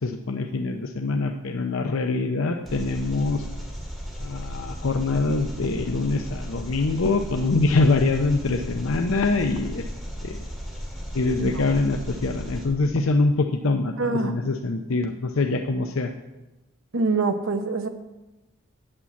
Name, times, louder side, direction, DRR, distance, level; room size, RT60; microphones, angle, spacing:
voice 1, 0.0-3.4 4.2-9.8 10.2-10.4 11.1-16.1, left 3 dB, 85° left, 5 dB, 0.7 m, -24 dB
Engine, 2.7-12.6, equal, ahead, 2.0 m, -35 dB
voice 2, 11.4-11.7 14.0-14.3 16.9-17.9, right 3 dB, 75° right, 6 dB, 0.9 m, -25 dB
8.8 x 7.3 x 8.2 m, 1.1 s
head